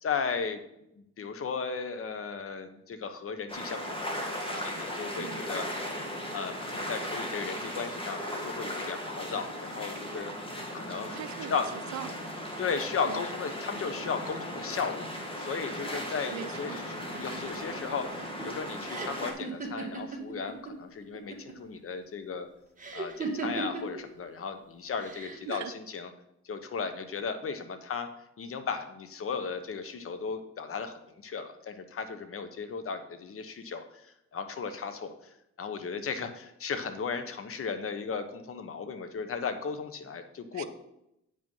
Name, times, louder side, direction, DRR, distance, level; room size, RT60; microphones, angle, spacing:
voice 1, 0.0-0.6 1.0-5.7 6.3-10.3 10.7-11.2 11.5-11.6 12.6-15.1 15.4-16.8 17.1-22.5 22.9-26.1 26.4-28.1 28.4-34.0 34.3-35.1 35.6-40.6, left 5 dB, 45° left, 9 dB, 1.2 m, -35 dB
sound 1, 3.5-19.3, equal, 20° left, 2.0 m, -37 dB
voice 2, 11.1-12.4 13.0-13.2 16.3-16.9 25.4-25.7 40.5-40.6, right 12 dB, 70° right, 12 dB, 0.5 m, -41 dB
sound 2, 17.1-20.7 21.0-21.7 22.8-24.0 25.0-25.6, right 4 dB, 25° right, 2.2 m, -37 dB
8.9 x 5.4 x 5.6 m, 0.82 s
cardioid pair, 90°, 30 cm